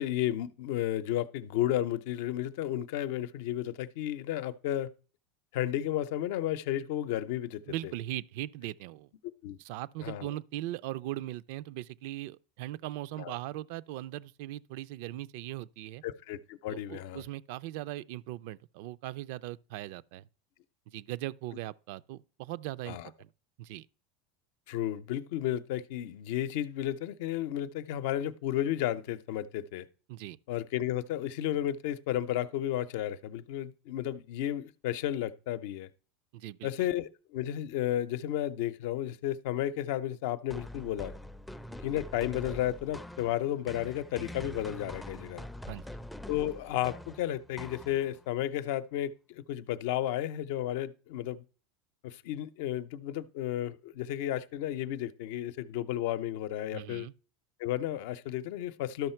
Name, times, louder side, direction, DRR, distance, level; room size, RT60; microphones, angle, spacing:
voice 1, 0.0-4.9 5.5-7.6 9.4-9.6 10.0-10.3 13.2-13.3 16.0-17.2 22.9-23.1 24.7-29.8 30.5-35.9 36.6-41.1 41.8-45.4 46.3-51.4 52.0-57.1 57.6-59.1, left 12 dB, 70° left, 0.6 m, -33 dB
voice 2, 7.7-9.1 9.6-16.0 16.7-20.3 20.9-23.3 23.6-23.9 30.1-30.4 36.3-36.9 45.7-45.8 56.7-57.1, right 15 dB, 70° right, 0.4 m, -39 dB
sound 1, 40.5-48.3, left 1 dB, 5° left, 0.4 m, -44 dB
12.0 x 5.7 x 4.4 m
supercardioid pair, 115°, 0 cm